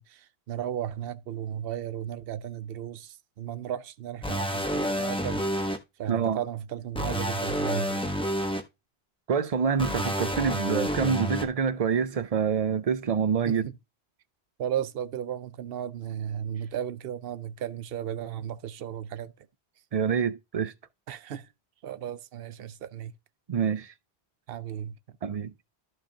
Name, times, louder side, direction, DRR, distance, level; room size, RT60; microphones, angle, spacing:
voice 1, 0.0-8.1 13.5-13.6 14.6-19.3 21.1-21.5 21.8-23.1 24.5-25.0, right 10 dB, 65° right, 0.9 m, -35 dB
sound 1, 4.2-5.8 7.0-8.6 9.8-11.5, equal, 5° left, 1.1 m, -29 dB
voice 2, 6.1-6.4 9.3-13.7 19.9-20.7 23.5-23.9 25.2-25.5, right 6 dB, 45° right, 0.5 m, -26 dB
14.0 x 5.1 x 2.8 m
omnidirectional pair, 1.1 m